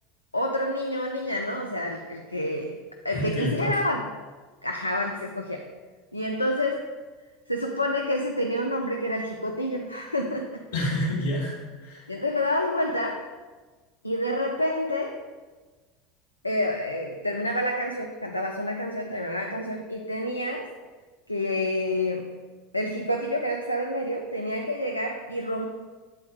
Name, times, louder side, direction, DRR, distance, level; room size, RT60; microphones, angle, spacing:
voice 1, 0.3-2.8 3.0-4.1 4.6-5.7 6.1-6.9 7.5-10.6 12.1-13.3 14.0-15.2 16.4-20.7 21.3-22.4 22.7-25.7, left 1 dB, 90° left, 2 dB, 0.4 m, -28 dB
voice 2, 3.1-3.8 10.7-12.1, equal, 70° left, -4 dB, 2.0 m, -28 dB
7.8 x 4.2 x 5.0 m, 1.3 s
figure-of-eight pair, 75°, 0 cm